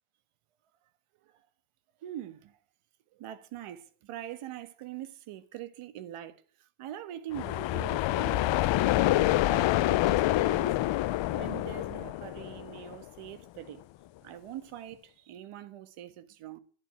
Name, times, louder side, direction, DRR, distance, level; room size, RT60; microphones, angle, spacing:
voice 1, 2.0-2.5 3.1-10.7 11.3-13.8 14.2-16.6, right 11 dB, 85° right, 1.6 m, -43 dB
sound 1, 7.3-13.1, left 16 dB, 65° left, 0.7 m, -27 dB
11.5 x 11.5 x 8.9 m
cardioid pair, 95°, 50 cm